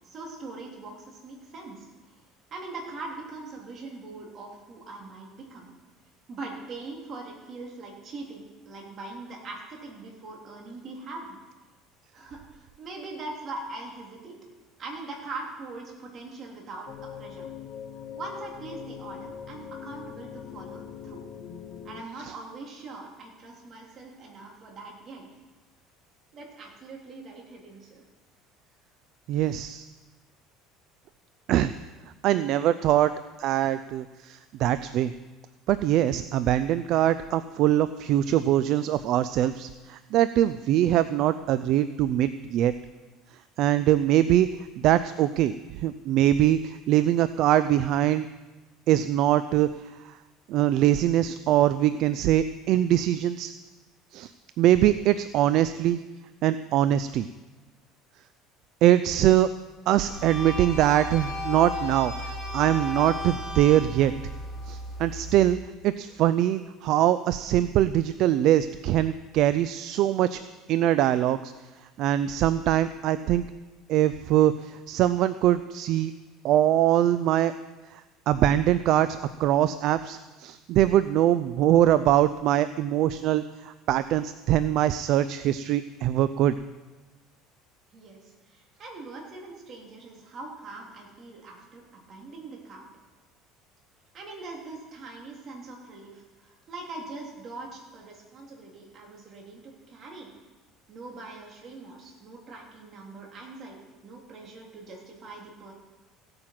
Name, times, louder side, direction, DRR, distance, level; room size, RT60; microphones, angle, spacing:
voice 1, 0.0-1.9 2.1-2.2 2.5-5.7 6.3-11.4 12.1-14.4 14.8-17.5 18.1-21.2 21.8-25.3 26.3-28.0 87.9-92.9 94.1-100.3 100.9-103.8 104.0-105.7, right 3 dB, 40° right, 0 dB, 3.4 m, -42 dB
sound 1, 16.9-22.0, left 8 dB, 50° left, 0.8 m, -41 dB
voice 2, 29.3-29.9 31.5-31.7 32.2-33.1 33.4-35.1 35.7-42.7 43.6-44.5 44.8-48.3 48.9-49.7 50.1-50.2 50.5-53.5 54.1-54.3 54.6-56.0 56.4-57.3 58.8-59.5 59.9-64.1 64.7-65.6 65.8-70.4 70.7-71.5 72.0-73.5 73.9-76.1 76.4-77.5 77.9-86.6, right 12 dB, 60° right, 13 dB, 0.4 m, -23 dB
sound 2, 60.1-65.5, left 1 dB, 5° right, 5.6 m, -34 dB
16.0 x 8.8 x 5.9 m, 1.2 s
cardioid pair, 125°, 0 cm